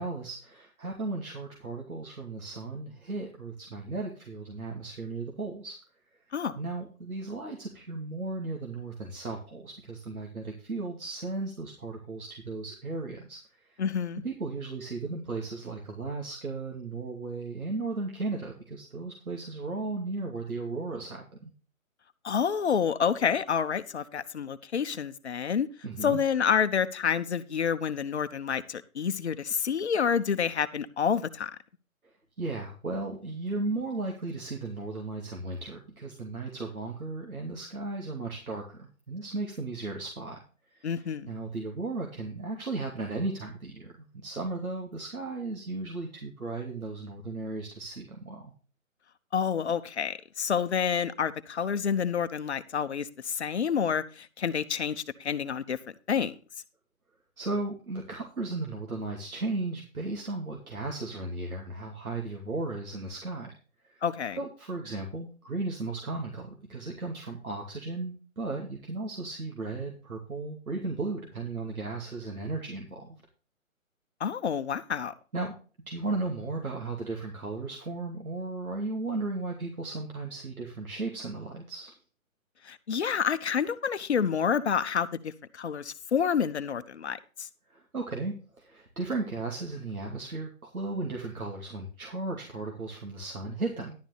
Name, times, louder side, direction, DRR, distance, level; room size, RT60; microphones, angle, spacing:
voice 1, 0.0-5.8 6.6-13.8 14.2-21.5 25.8-26.2 32.0-32.1 32.4-40.4 40.7-40.9 41.3-48.5 57.4-63.5 63.8-64.0 64.4-73.2 75.3-75.5 75.9-81.9 87.7-93.9, right 3 dB, 85° right, 2.7 m, -35 dB
voice 2, 13.8-14.2 22.2-25.7 26.0-31.5 40.8-41.3 49.3-55.8 56.1-56.3 64.0-64.4 74.2-75.1 82.7-87.5, left 7 dB, 50° left, 1.0 m, -28 dB
11.5 x 9.2 x 3.4 m
figure-of-eight pair, 150°, 42 cm